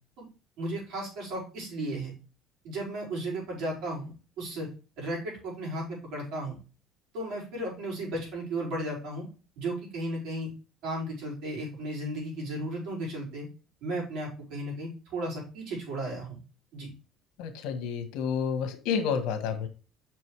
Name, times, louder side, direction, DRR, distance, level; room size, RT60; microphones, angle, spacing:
voice 1, 0.6-2.1 2.6-4.7 5.0-6.6 7.1-9.3 9.6-10.5 10.8-13.5 13.8-16.4 16.7-16.9, right 1 dB, 60° right, 4.8 m, -35 dB
voice 2, 17.4-19.7, left 6 dB, 85° left, 1.5 m, -30 dB
6.1 x 5.4 x 4.7 m
cardioid pair, 175°, 0 cm